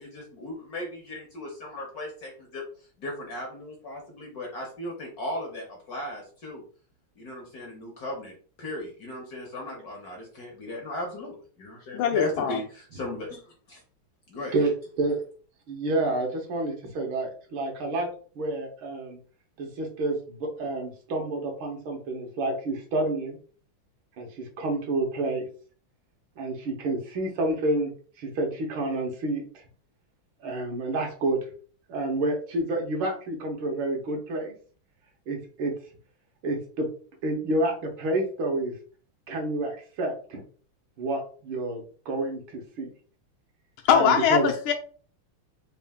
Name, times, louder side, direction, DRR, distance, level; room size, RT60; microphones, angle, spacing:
voice 1, 0.0-2.6 3.0-6.6 7.2-13.8 14.3-14.5, left 1 dB, 60° left, 0 dB, 1.1 m, -37 dB
voice 2, 11.9-12.6 43.8-44.7, left 7 dB, 75° left, 4 dB, 1.4 m, -21 dB
voice 3, 15.7-18.1 18.3-19.2 19.6-23.4 24.2-25.4 26.4-27.9 28.2-29.6 30.4-31.4 31.9-34.5 35.3-35.7 36.4-36.9 37.2-38.7 39.3-40.4 41.0-42.9 43.9-44.5, right 2 dB, 70° right, 2 dB, 1.7 m, -29 dB
4.2 x 2.4 x 3.5 m, 0.42 s
omnidirectional pair, 2.4 m